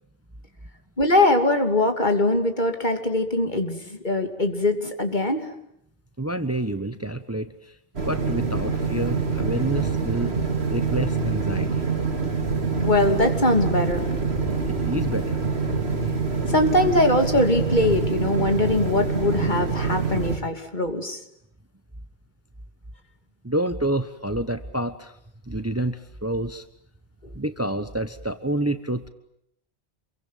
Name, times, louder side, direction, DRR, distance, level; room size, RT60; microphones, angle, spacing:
voice 1, 1.0-5.5 12.8-14.1 16.5-21.2, left 2 dB, 45° left, 6 dB, 3.0 m, -22 dB
voice 2, 6.2-7.7 8.1-10.3 10.7-11.9 14.7-15.4 23.4-25.1 25.5-26.6 27.3-29.1, right 1 dB, 15° right, 11 dB, 1.1 m, -28 dB
sound 1, 8.0-20.4, right 4 dB, 70° right, 3.1 m, -25 dB
27.5 x 23.5 x 9.3 m, 0.74 s
omnidirectional pair, 1.1 m